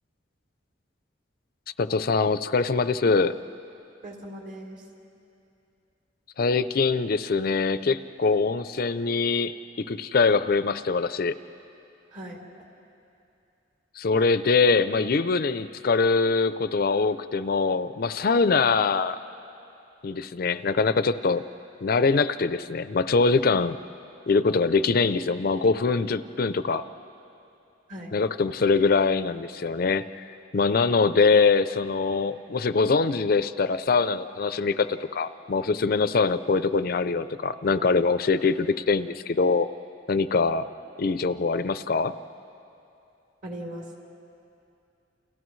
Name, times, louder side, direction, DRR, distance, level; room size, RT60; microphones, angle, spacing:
voice 1, 1.8-3.4 6.4-11.3 14.0-19.2 20.0-21.4 21.8-23.8 24.3-26.8 28.1-30.2 30.5-39.7 40.1-40.7 41.0-42.1, left 4 dB, 50° left, 13 dB, 0.5 m, -23 dB
voice 2, 4.0-4.8 12.1-12.4 27.9-28.1 43.4-44.0, right 1 dB, 45° right, -1 dB, 3.4 m, -39 dB
30.0 x 29.0 x 3.2 m, 2.7 s
head